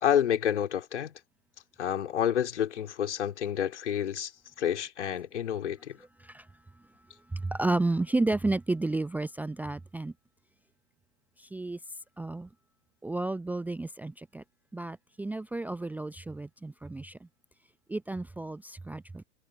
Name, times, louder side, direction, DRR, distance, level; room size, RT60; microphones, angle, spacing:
voice 1, 0.0-1.1 1.8-4.3 4.6-6.0, left 9 dB, 70° left, 3.6 m, -29 dB
voice 2, 7.3-10.1 11.4-11.8 12.2-12.5 13.0-14.4 14.7-17.2 17.9-19.2, right 2 dB, 5° right, 0.7 m, -32 dB
figure-of-eight pair, 100°, 37 cm